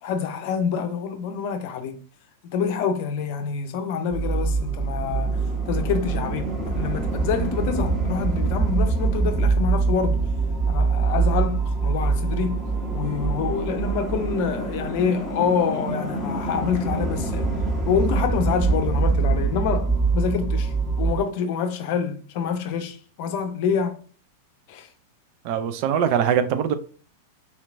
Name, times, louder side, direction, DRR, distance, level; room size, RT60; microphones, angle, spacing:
voice 1, 0.0-2.0 2.4-10.2 10.7-12.6 12.9-17.5 17.9-24.0 24.7-24.9, left 6 dB, 50° left, 0.6 m, -27 dB
sound 1, 4.1-21.2, right 4 dB, 10° right, 1.1 m, -24 dB
voice 2, 25.4-26.7, right 8 dB, 45° right, 0.4 m, -22 dB
4.2 x 2.9 x 2.5 m
figure-of-eight pair, 90°, 0 cm